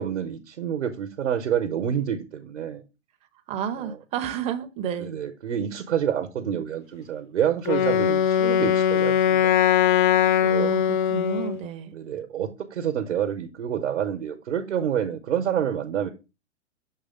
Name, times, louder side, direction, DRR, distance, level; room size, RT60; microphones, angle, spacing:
voice 1, 0.0-2.8 3.8-4.0 5.0-9.5 10.4-10.7 11.9-16.1, right 9 dB, 65° right, 6 dB, 0.9 m, -28 dB
voice 2, 3.5-5.1 10.4-11.9, right 8 dB, 20° right, 10 dB, 0.5 m, -31 dB
Wind instrument woodwind instrument, 7.7-11.6, left 9 dB, 45° left, 0.4 m, -21 dB
6.5 x 3.4 x 5.0 m, 0.28 s
figure-of-eight pair, 115°, 37 cm